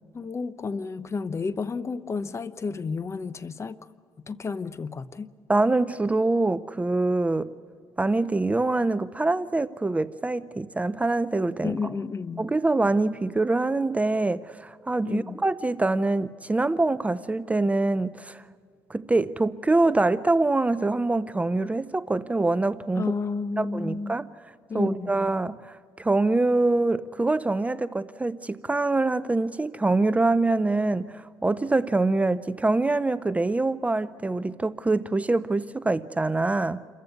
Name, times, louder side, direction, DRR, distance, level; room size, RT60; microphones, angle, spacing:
voice 1, 0.1-3.8 4.3-5.3 11.6-12.5 15.0-15.4 23.0-24.2 24.7-25.1, left 4 dB, 35° left, 0.9 m, -31 dB
voice 2, 5.5-7.5 8.0-11.8 12.4-18.4 18.9-23.0 23.6-24.3 24.7-36.8, right 2 dB, 15° right, 0.6 m, -24 dB
28.0 x 15.0 x 9.3 m
cardioid pair, 95°, 9 cm